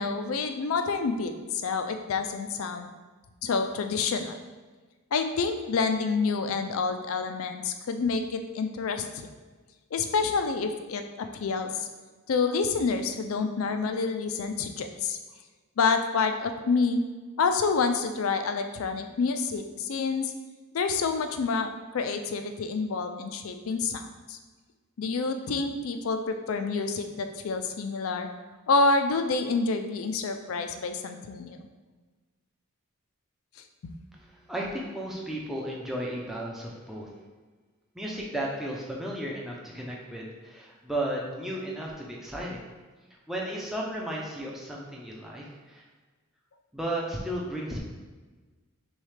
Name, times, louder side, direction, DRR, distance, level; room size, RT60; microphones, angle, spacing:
voice 1, 0.0-2.9 3.4-4.4 5.1-9.1 9.9-11.9 12.3-15.2 15.8-17.0 17.4-20.3 20.7-24.4 25.0-28.3 28.7-31.6 33.8-33.9, left 4 dB, 70° left, 7 dB, 0.4 m, -28 dB
voice 2, 34.2-37.1 37.9-42.6 43.3-45.8 46.7-47.8, right 1 dB, ahead, -3 dB, 0.5 m, -34 dB
6.2 x 2.4 x 3.2 m, 1.3 s
head